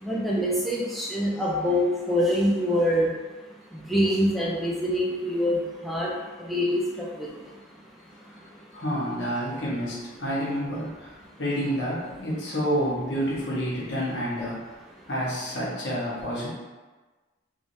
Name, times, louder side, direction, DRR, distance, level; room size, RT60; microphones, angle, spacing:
voice 1, 0.0-3.1 3.4-7.6 8.1-8.8 14.9-15.0, equal, ahead, -5 dB, 0.6 m, -26 dB
voice 2, 8.7-11.1 11.4-14.6 15.1-16.5, equal, 65° left, -7 dB, 1.2 m, -29 dB
3.4 x 3.3 x 2.7 m, 1.3 s
head